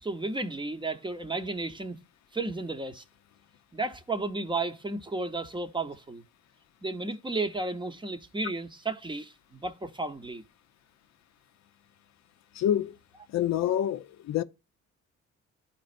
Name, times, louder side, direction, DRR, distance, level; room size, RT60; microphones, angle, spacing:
voice 1, 0.0-2.0 2.3-3.0 3.7-6.2 6.8-10.4, right 3 dB, 15° right, 0.7 m, -33 dB
voice 2, 12.5-13.0 13.3-14.4, left 11 dB, 65° left, 0.5 m, -27 dB
11.5 x 4.2 x 2.5 m
cardioid pair, 90°, 30 cm